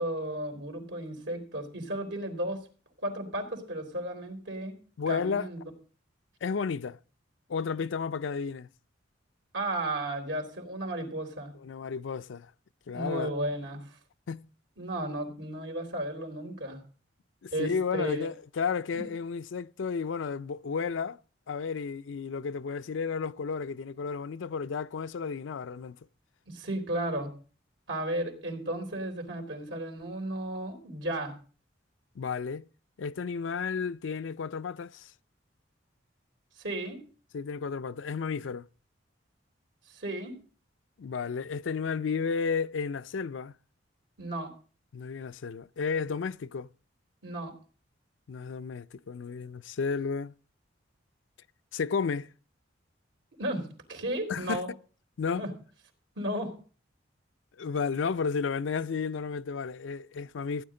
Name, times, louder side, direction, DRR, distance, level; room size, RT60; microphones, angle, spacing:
voice 1, 0.0-2.7 3.0-4.8 5.1-5.6 9.5-11.5 12.9-14.0 14.8-16.8 17.5-18.3 18.9-19.0 26.5-27.3 27.9-31.3 36.6-37.0 39.9-40.3 44.2-44.5 47.2-47.5 53.4-54.7 55.4-55.5 56.2-56.5, right 1 dB, 85° right, 3.7 m, -34 dB
voice 2, 5.0-5.5 6.4-7.0 7.5-8.7 11.6-12.5 12.9-13.3 14.3-14.5 17.4-21.2 21.5-26.0 32.2-32.7 33.0-35.1 37.3-38.7 41.0-43.5 44.9-46.7 48.3-50.3 51.7-52.3 54.3-54.6 55.2-55.4 57.6-60.6, left 5 dB, 85° left, 0.4 m, -32 dB
16.0 x 10.0 x 3.8 m
head